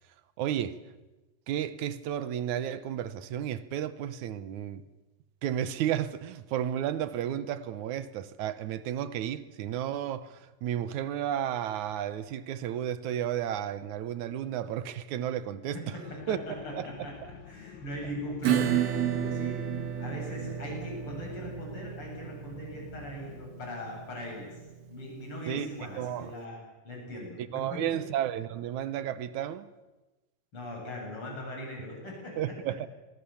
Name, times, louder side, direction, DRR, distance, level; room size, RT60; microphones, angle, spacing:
voice 1, 0.4-0.8 1.5-4.8 5.4-16.0 16.3-16.4 16.7-17.1 25.5-25.7 25.9-26.3 27.4-29.7 32.4-32.9, right 10 dB, 90° right, 2.5 m, -32 dB
voice 2, 15.7-17.1 17.5-19.6 20.0-24.5 24.9-26.6 26.8-28.0 30.5-32.3, left 1 dB, 45° left, 9.1 m, -40 dB
sound 1, 16.1-23.5, left 9 dB, 80° left, 2.6 m, -50 dB
Acoustic guitar / Strum, 18.4-25.6, right 10 dB, 65° right, 2.7 m, -32 dB
27.0 x 22.5 x 7.2 m
omnidirectional pair, 3.3 m